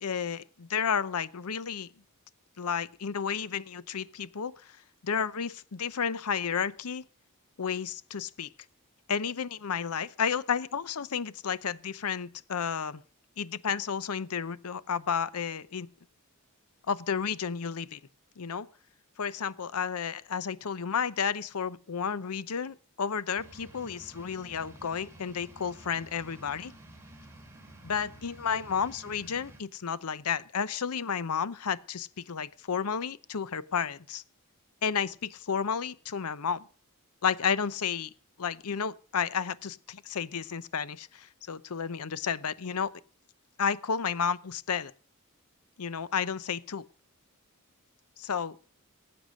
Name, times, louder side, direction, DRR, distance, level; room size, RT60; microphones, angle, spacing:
voice 1, 0.0-1.9 2.6-4.8 5.0-7.0 7.6-8.5 9.1-13.0 13.4-15.9 16.9-18.0 18.4-18.7 19.2-26.7 27.8-34.2 34.8-36.7 37.2-38.1 38.4-42.9 43.6-44.9 45.8-46.8 48.2-48.6, left 6 dB, 85° left, 0.7 m, -32 dB
sound 1, 23.4-29.6, right 1 dB, 10° right, 2.7 m, -51 dB
18.0 x 8.0 x 6.4 m
head